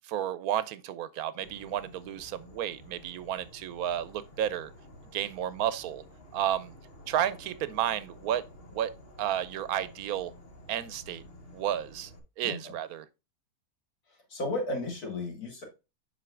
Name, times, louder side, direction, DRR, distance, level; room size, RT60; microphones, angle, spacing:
voice 1, 0.1-4.7 5.1-6.0 6.3-6.7 7.1-8.4 8.7-8.9 9.2-10.3 10.7-11.2 11.5-12.1 12.4-13.0, right 11 dB, 80° right, 1.1 m, -32 dB
Insect / Frog, 1.4-12.2, left 1 dB, 45° left, 1.3 m, -52 dB
voice 2, 12.4-12.7 14.1-15.6, left 2 dB, 80° left, 2.7 m, -34 dB
7.6 x 5.8 x 2.4 m
omnidirectional pair, 1.6 m